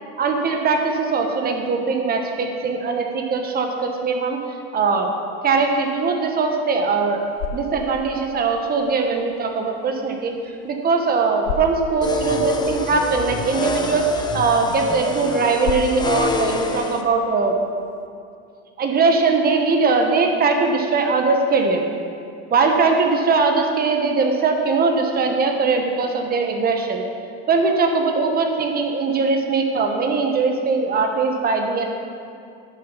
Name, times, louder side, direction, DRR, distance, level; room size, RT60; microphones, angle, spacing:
voice 1, 0.2-4.4 4.7-5.1 5.4-7.2 7.5-10.3 10.6-17.6 18.8-21.8 22.5-27.0 27.5-31.9, right 4 dB, 25° right, 3 dB, 1.2 m, -20 dB
sound 1, 7.0-18.1, left 5 dB, 65° left, 0.9 m, -37 dB
sound 2, 12.0-17.0, left 3 dB, 15° left, 0.6 m, -26 dB
11.0 x 6.8 x 5.6 m, 2.4 s
supercardioid pair, 130°, 34 cm